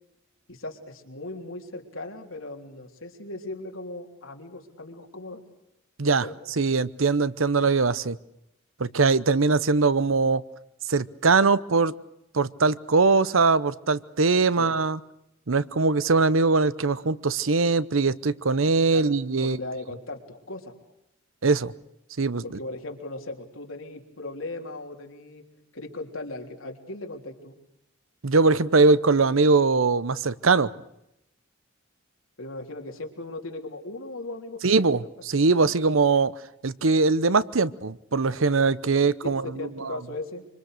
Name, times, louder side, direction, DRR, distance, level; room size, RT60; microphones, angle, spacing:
voice 1, 0.5-5.4 6.2-6.4 9.3-9.4 14.6-14.8 18.9-19.1 19.4-20.7 22.4-25.4 25.7-27.6 32.4-35.0 35.5-35.7 39.6-40.5, left 2 dB, 80° left, 2 dB, 3.5 m, -38 dB
voice 2, 6.6-8.2 8.8-10.4 10.9-11.9 12.3-15.0 15.5-19.6 21.4-21.7 22.2-22.4 28.2-30.7 34.6-36.3 36.6-40.0, right 4 dB, 80° right, 17 dB, 0.8 m, -21 dB
26.0 x 25.5 x 6.7 m, 0.84 s
head